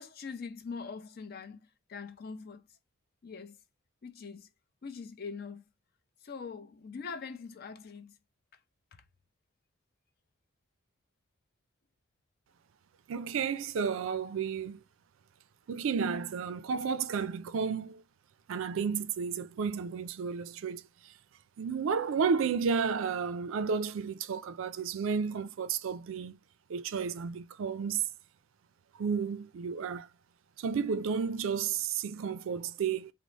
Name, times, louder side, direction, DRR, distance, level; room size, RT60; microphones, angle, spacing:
voice 1, 0.0-1.6 1.9-2.6 3.2-3.6 4.0-4.5 4.8-5.6 6.2-8.2 8.9-9.0, left 5 dB, 45° left, 0.4 m, -42 dB
voice 2, 13.1-14.8 15.7-18.0 18.5-21.1 21.6-26.4 26.7-28.1 29.0-30.1 30.6-33.1, right 6 dB, 70° right, 0.3 m, -32 dB
3.9 x 2.0 x 3.1 m
head